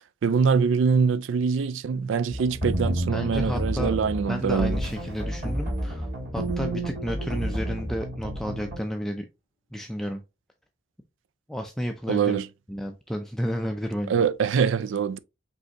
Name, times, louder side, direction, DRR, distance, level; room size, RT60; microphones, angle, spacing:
voice 1, 0.2-4.8 12.1-12.5 14.1-15.2, right 6 dB, 75° right, 0.4 m, -24 dB
sound 1, 2.3-8.8, right 1 dB, 45° right, 2.5 m, -30 dB
voice 2, 3.1-3.9 4.3-9.2 9.7-10.2 11.5-12.4 12.7-14.1, equal, ahead, 0.4 m, -31 dB
sound 2, 4.5-9.4, left 1 dB, 20° right, 2.4 m, -39 dB
5.2 x 3.4 x 2.9 m
head